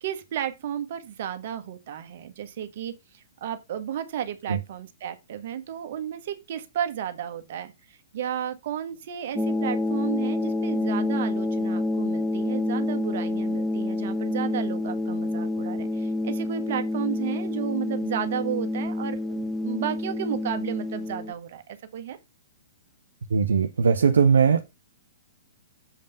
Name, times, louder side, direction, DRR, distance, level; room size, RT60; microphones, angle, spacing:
voice 1, 0.0-22.2, right 10 dB, 55° right, 1.5 m, -33 dB
sound 1, 9.4-21.3, left 2 dB, 10° left, 1.2 m, -28 dB
voice 2, 23.3-24.6, right 6 dB, 70° right, 0.8 m, -19 dB
7.4 x 5.3 x 5.4 m
figure-of-eight pair, 115°, 0 cm